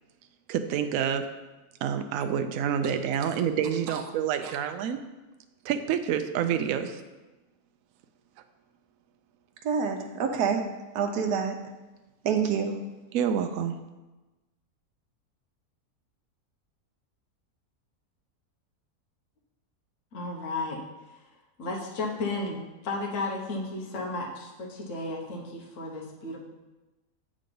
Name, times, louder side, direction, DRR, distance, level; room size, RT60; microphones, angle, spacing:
voice 1, 0.5-1.2 1.8-5.0 5.6-7.0 13.1-13.7, right 8 dB, 70° right, 8 dB, 0.9 m, -28 dB
voice 2, 9.6-10.6 10.9-11.6 12.2-12.7, right 6 dB, 85° right, 4 dB, 1.3 m, -26 dB
voice 3, 20.1-20.8 21.6-26.4, left 2 dB, 55° left, -1 dB, 1.3 m, -33 dB
7.5 x 3.8 x 5.2 m, 1.1 s
omnidirectional pair, 1.6 m